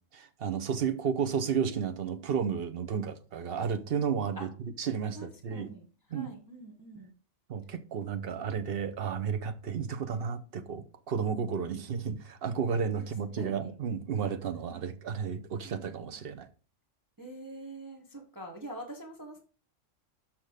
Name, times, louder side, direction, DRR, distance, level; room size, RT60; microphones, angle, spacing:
voice 1, 0.1-4.5 4.8-5.7 6.1-6.3 7.5-16.5, right 6 dB, 55° right, 1.0 m, -32 dB
voice 2, 5.1-7.1 13.0-13.7 14.7-14.9 15.6-16.3 17.2-19.4, right 1 dB, 15° right, 1.1 m, -46 dB
6.2 x 6.0 x 5.0 m
omnidirectional pair, 1.3 m